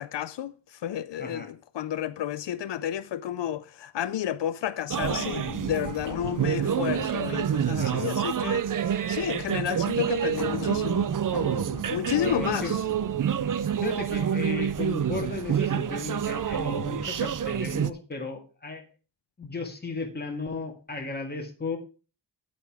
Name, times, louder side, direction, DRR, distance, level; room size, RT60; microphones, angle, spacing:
voice 1, 0.0-11.1 11.9-12.8, left 11 dB, 85° left, 0.6 m, -31 dB
sound 1, 4.9-17.9, right 9 dB, 50° right, 0.5 m, -28 dB
sound 2, 5.1-8.8 10.4-14.0, left 5 dB, 50° left, 1.1 m, -40 dB
voice 2, 12.1-12.7 13.8-18.8 19.4-21.8, left 3 dB, 25° left, 1.9 m, -35 dB
9.6 x 8.2 x 4.8 m
wide cardioid pair, 180°, 42 cm